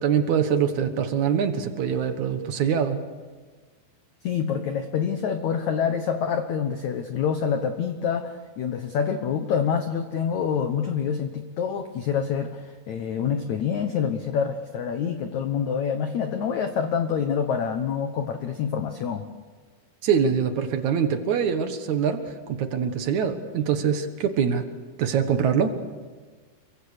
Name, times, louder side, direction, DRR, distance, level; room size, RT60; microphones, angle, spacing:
voice 1, 0.0-3.0 20.0-24.7 25.0-25.8, right 7 dB, 60° right, 7 dB, 2.0 m, -24 dB
voice 2, 4.2-19.3, left 7 dB, 80° left, 7 dB, 1.6 m, -26 dB
28.0 x 23.5 x 6.6 m, 1.4 s
omnidirectional pair, 5.0 m